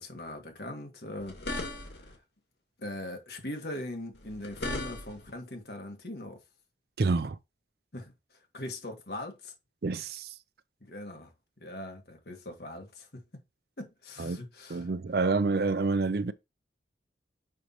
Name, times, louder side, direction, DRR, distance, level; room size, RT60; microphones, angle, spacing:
voice 1, 0.0-2.1 2.8-6.4 7.9-8.1 8.5-9.5 10.8-11.3 11.6-13.2 13.8-14.9, left 1 dB, 60° left, 1.7 m, -41 dB
sound 1, 1.2-2.2 4.2-5.3, left 2 dB, 80° left, 2.2 m, -37 dB
voice 2, 7.0-7.4 9.8-10.3 14.2-14.4 14.7-16.3, right 3 dB, 55° right, 0.5 m, -28 dB
6.4 x 5.5 x 3.1 m
head